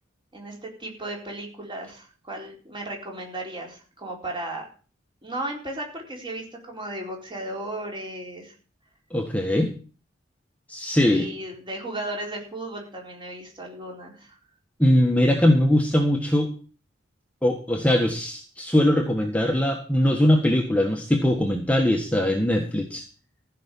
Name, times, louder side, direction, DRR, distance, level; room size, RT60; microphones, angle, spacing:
voice 1, 0.3-4.7 5.2-8.5 11.1-14.4, right 1 dB, 25° right, 0 dB, 4.2 m, -35 dB
voice 2, 9.1-9.7 10.7-11.3 14.8-16.5 17.4-23.0, left 1 dB, 5° left, 2 dB, 1.4 m, -21 dB
15.0 x 5.8 x 8.4 m, 0.39 s
head